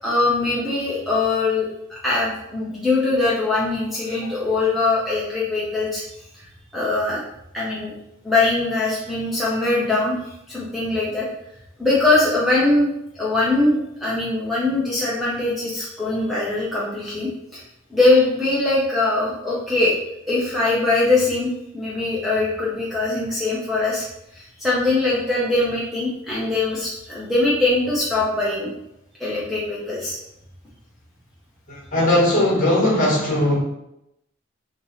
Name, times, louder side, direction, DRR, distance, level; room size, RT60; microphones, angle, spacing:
voice 1, 0.0-6.0 6.7-7.2 7.5-7.9 8.2-11.2 11.8-12.9 13.1-17.6 17.9-19.9 20.2-24.0 24.3-28.7 29.2-30.2, left 2 dB, ahead, -7 dB, 0.7 m, -22 dB
voice 2, 31.7-33.6, left 1 dB, 40° left, -5 dB, 1.5 m, -19 dB
3.2 x 2.9 x 4.1 m, 0.83 s
head